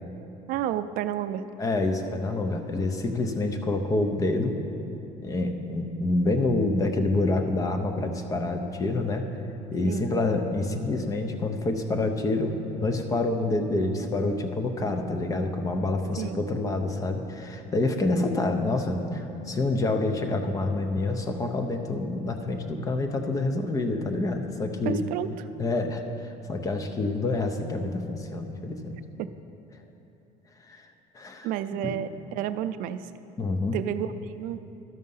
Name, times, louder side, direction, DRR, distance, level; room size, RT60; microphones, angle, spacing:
voice 1, 0.5-1.4 9.8-10.1 16.2-16.4 24.9-25.3 29.2-29.3 31.4-33.0 33.7-34.6, right 11 dB, 65° right, 12 dB, 0.4 m, -30 dB
voice 2, 1.6-4.6 5.2-9.3 9.7-25.1 25.6-29.0 30.7-30.8 31.1-32.0 33.4-33.8, left 2 dB, 20° left, 6 dB, 0.6 m, -27 dB
12.5 x 6.4 x 5.5 m, 2.8 s
cardioid pair, 155°, 15 cm